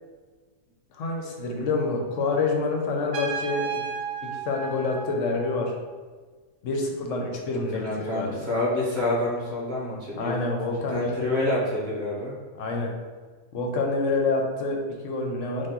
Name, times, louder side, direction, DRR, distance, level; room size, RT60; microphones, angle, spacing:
voice 1, 0.9-3.7 4.2-5.7 6.6-8.5 10.2-11.4 12.5-12.9 13.5-15.7, left 3 dB, 60° left, 1 dB, 0.9 m, -27 dB
Trumpet, 3.1-5.8, right 5 dB, 85° right, 1.3 m, -34 dB
voice 2, 7.7-10.4 10.9-12.3, left 1 dB, 30° right, -7 dB, 1.4 m, -27 dB
5.3 x 2.2 x 3.7 m, 1.4 s
omnidirectional pair, 1.7 m